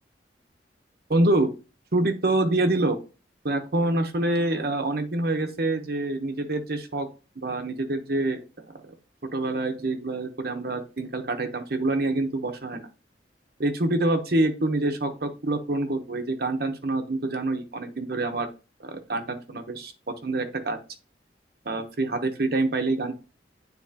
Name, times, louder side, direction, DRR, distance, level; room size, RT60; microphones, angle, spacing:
voice 1, 1.1-1.5 1.9-3.0 3.4-7.1 7.4-8.4 8.9-9.0 9.3-12.9 13.6-18.5 18.8-19.9 20.2-20.8 21.6-23.1, right 2 dB, 60° right, 7 dB, 1.0 m, -26 dB
9.5 x 4.1 x 2.8 m, 0.33 s
head